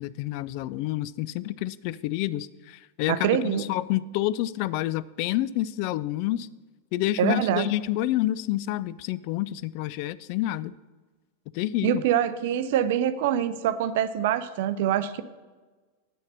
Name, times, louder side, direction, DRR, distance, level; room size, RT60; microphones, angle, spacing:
voice 1, 0.0-6.5 6.9-10.7 11.5-12.0, left 15 dB, 45° left, 17 dB, 0.3 m, -28 dB
voice 2, 3.1-3.6 7.2-7.7 11.8-15.2, right 10 dB, 50° right, 13 dB, 0.5 m, -25 dB
8.4 x 6.4 x 5.6 m, 1.3 s
figure-of-eight pair, 90°, 0 cm